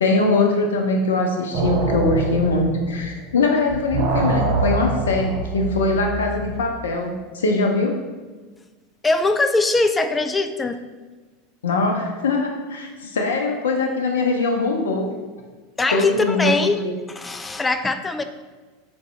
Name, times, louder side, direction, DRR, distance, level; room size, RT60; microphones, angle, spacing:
voice 1, 0.0-7.9 11.6-15.1 15.9-16.5 16.8-17.0, left 3 dB, 75° left, 2 dB, 0.5 m, -22 dB
sound 1, 1.5-3.4 3.7-6.7, right 3 dB, 55° right, 0.6 m, -25 dB
voice 2, 9.0-10.8 15.8-16.8 17.1-18.2, left 3 dB, 15° left, 8 dB, 0.3 m, -21 dB
3.9 x 3.4 x 3.1 m, 1.3 s
figure-of-eight pair, 85°, 0 cm